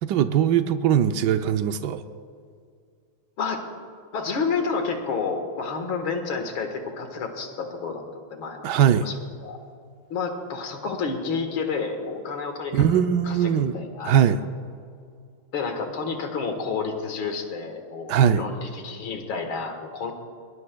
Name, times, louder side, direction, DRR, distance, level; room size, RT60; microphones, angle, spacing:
voice 1, 0.0-2.0 8.6-9.1 12.7-13.8 14.0-14.4 18.1-18.4, right 9 dB, 85° right, 9 dB, 0.9 m, -20 dB
voice 2, 4.1-9.1 9.4-9.6 10.1-14.2 15.5-20.1, left 5 dB, 65° left, 4 dB, 2.3 m, -30 dB
21.5 x 19.5 x 2.3 m, 2.3 s
omnidirectional pair, 2.4 m